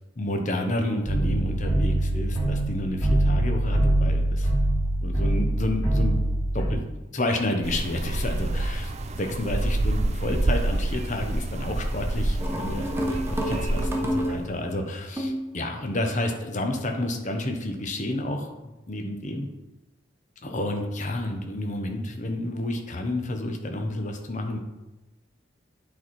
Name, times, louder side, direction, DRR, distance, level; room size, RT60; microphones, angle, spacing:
voice 1, 0.2-4.5 5.0-6.2 6.5-6.8 7.1-8.9 9.2-19.5 20.4-24.6, left 1 dB, 40° left, 4 dB, 0.9 m, -30 dB
sound 1, 1.1-6.7, right 1 dB, 20° left, 2.9 m, -23 dB
sound 2, 7.6-14.5, right 1 dB, 35° right, 0.5 m, -28 dB
sound 3, 12.4-14.7 15.2-15.5, equal, 15° right, 0.9 m, -29 dB
9.0 x 4.2 x 4.6 m, 1.0 s
head